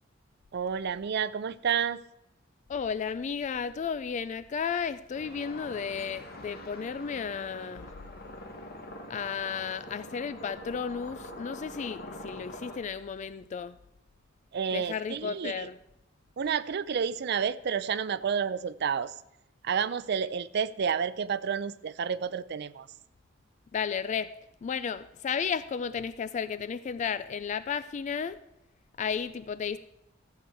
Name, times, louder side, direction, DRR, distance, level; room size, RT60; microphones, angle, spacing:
voice 1, 0.5-2.0 14.5-15.7 16.4-19.1 19.6-22.9, right 7 dB, 60° right, 0.4 m, -30 dB
voice 2, 2.7-7.9 9.1-13.8 14.7-15.8 23.7-24.3 24.6-28.4 29.0-29.8, left 6 dB, 40° left, 0.3 m, -33 dB
sound 1, 5.1-12.8, left 1 dB, 55° left, 1.7 m, -44 dB
14.0 x 7.9 x 4.6 m
head